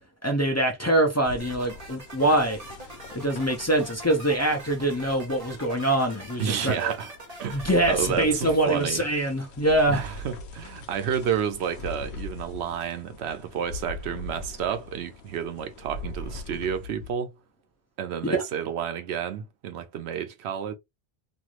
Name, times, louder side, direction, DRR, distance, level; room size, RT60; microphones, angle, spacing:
voice 1, 0.2-2.6 3.1-6.9 7.5-10.0 18.3-18.4, right 1 dB, 25° left, 0.3 m, -24 dB
sound 1, 1.2-17.1, left 3 dB, 75° left, 0.9 m, -42 dB
sound 2, 1.4-7.8, right 1 dB, 40° right, 0.9 m, -43 dB
voice 2, 6.4-7.1 7.4-9.0 9.9-17.3 18.0-20.7, right 8 dB, 80° right, 0.8 m, -30 dB
3.0 x 2.5 x 2.4 m
omnidirectional pair, 1.1 m